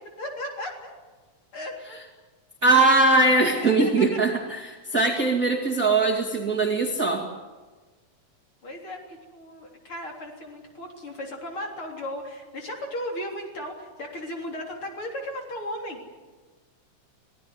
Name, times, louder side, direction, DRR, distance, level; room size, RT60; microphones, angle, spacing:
voice 1, 0.2-0.9 1.5-2.0 3.6-4.2 8.6-16.0, left 1 dB, 40° left, 1 dB, 4.2 m, -35 dB
voice 2, 2.6-4.6 4.9-7.2, right 3 dB, 25° right, 1 dB, 2.3 m, -21 dB
26.0 x 18.0 x 9.6 m, 1.3 s
omnidirectional pair, 4.0 m